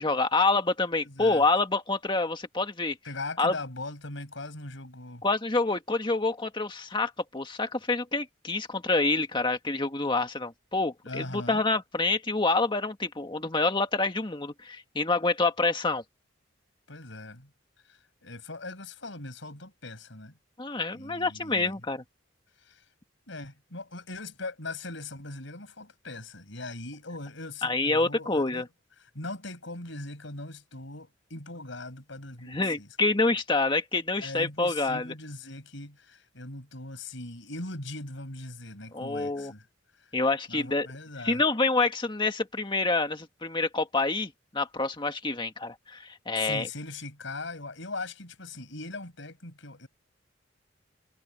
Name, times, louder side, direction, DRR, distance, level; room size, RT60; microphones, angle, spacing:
voice 1, 0.0-3.0 3.4-3.5 5.2-16.0 20.6-22.0 27.6-28.7 32.5-35.1 38.9-39.5 40.1-40.9 41.2-46.7, left 3 dB, 25° left, 1.8 m, -27 dB
voice 2, 1.0-1.4 3.0-5.2 11.0-11.6 16.9-17.5 17.9-20.4 20.9-21.8 22.6-22.8 23.3-28.7 29.0-32.9 34.2-39.7 40.0-40.1 40.5-41.4 46.4-49.9, left 2 dB, 70° left, 5.5 m, -40 dB
head